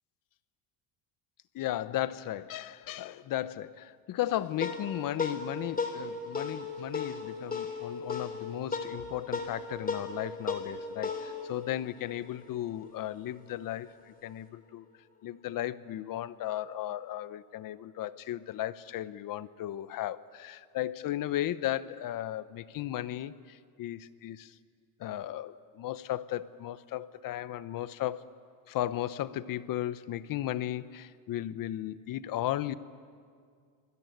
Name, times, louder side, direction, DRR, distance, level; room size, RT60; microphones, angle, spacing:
voice 1, 1.5-14.8 15.2-24.5 25.0-28.3 28.7-32.7, left 13 dB, 50° left, 16 dB, 0.9 m, -35 dB
sound 1, 4.2-13.0, left 4 dB, 20° left, 3.4 m, -37 dB
26.0 x 21.0 x 9.3 m, 2.1 s
cardioid pair, 135°, 44 cm